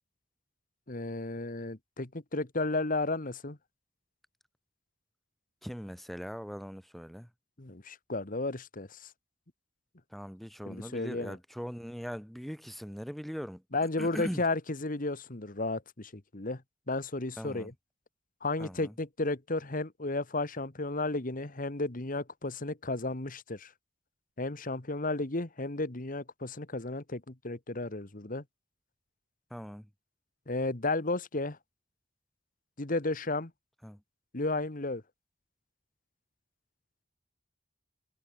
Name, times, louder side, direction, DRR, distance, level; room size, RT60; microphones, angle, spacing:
voice 1, 0.9-3.6 7.6-9.1 10.7-11.4 13.7-16.6 16.9-17.7 18.4-23.7 24.4-28.4 30.5-31.6 32.8-33.5 34.3-35.0, left 2 dB, 50° left, 1.8 m, -33 dB
voice 2, 5.6-7.3 10.1-13.6 14.0-14.4 17.4-17.7 18.6-18.9 29.5-29.9 33.8-34.0, equal, ahead, 1.4 m, -40 dB
head